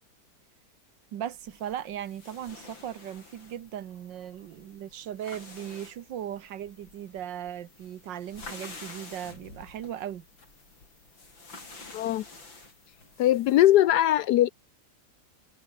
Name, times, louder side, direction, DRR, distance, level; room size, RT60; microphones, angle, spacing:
voice 1, 1.1-10.3, right 10 dB, 75° right, 1.7 m, -38 dB
sound 1, 1.3-13.9, left 3 dB, 90° left, 6.1 m, -49 dB
voice 2, 11.9-12.2 13.2-14.5, left 13 dB, 70° left, 1.0 m, -21 dB
omnidirectional pair, 2.0 m